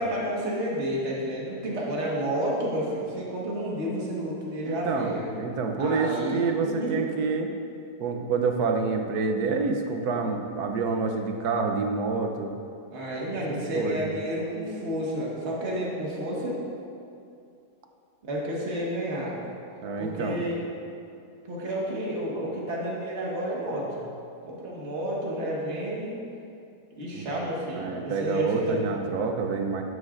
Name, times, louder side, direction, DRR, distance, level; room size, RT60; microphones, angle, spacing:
voice 1, 0.0-5.4 5.8-7.0 12.9-16.6 18.2-19.4 20.0-20.6 21.4-23.9 24.4-26.2 27.0-28.8, equal, 40° right, -4 dB, 1.7 m, -30 dB
voice 2, 4.6-7.5 8.0-12.5 13.7-14.1 19.8-20.4 27.1-27.2 27.7-29.8, right 4 dB, 65° right, 4 dB, 1.2 m, -27 dB
12.5 x 9.7 x 2.5 m, 2.5 s
omnidirectional pair, 1.9 m